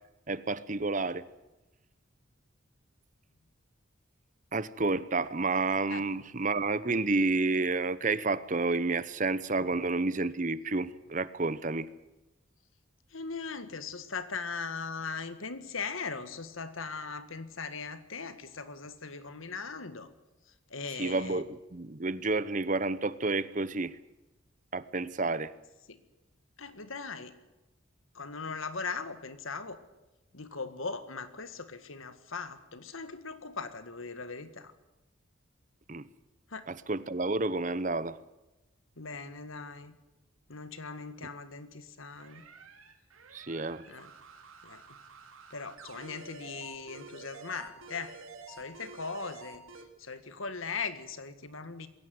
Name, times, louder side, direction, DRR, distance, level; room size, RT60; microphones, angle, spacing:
voice 1, 0.3-1.3 4.5-11.9 21.0-24.0 24.7-25.5 35.9-36.1 36.7-38.2 43.3-43.9, right 3 dB, 40° right, 16 dB, 0.8 m, -30 dB
voice 2, 13.1-20.1 20.7-21.4 25.9-26.0 26.6-27.3 28.1-29.8 30.3-34.7 36.5-36.7 39.0-39.9 40.5-42.4 43.9-44.1 44.6-44.8 45.5-48.2 48.5-49.6 50.0-51.9, left 4 dB, 80° left, 11 dB, 1.8 m, -39 dB
sound 1, 42.2-49.8, right 4 dB, 85° right, 2.8 m, -49 dB
21.5 x 16.5 x 9.5 m, 1.0 s
head